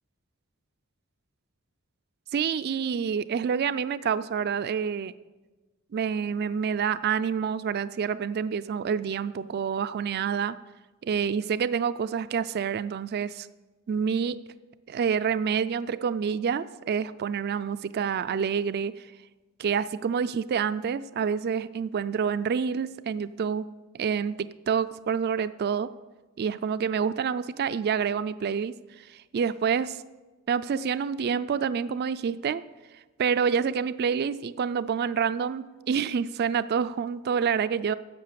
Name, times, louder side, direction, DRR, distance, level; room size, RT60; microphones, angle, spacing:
voice 1, 2.3-5.1 5.9-10.6 11.0-13.5 13.9-14.4 14.9-18.9 19.6-23.6 23.9-25.9 26.4-30.0 30.5-32.6 33.2-37.9, right 6 dB, 45° right, 15 dB, 0.3 m, -27 dB
11.0 x 7.6 x 6.7 m, 1.2 s
head